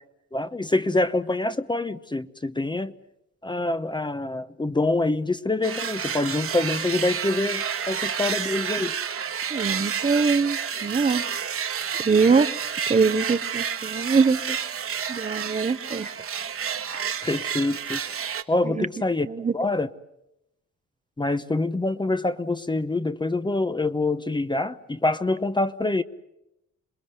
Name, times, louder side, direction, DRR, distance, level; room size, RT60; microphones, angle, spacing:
voice 1, 0.3-2.9 3.4-9.0 17.2-18.0 18.5-19.3 19.5-19.9 21.2-26.0, left 2 dB, 15° left, 0.9 m, -25 dB
sound 1, 5.6-18.4, right 7 dB, 45° right, 1.6 m, -30 dB
voice 2, 9.5-11.2 12.0-12.5 12.9-14.6 15.1-16.1 18.6-18.9 19.3-19.5, right 5 dB, 25° right, 0.9 m, -23 dB
27.5 x 21.0 x 8.0 m
cardioid pair, 90°, 30 cm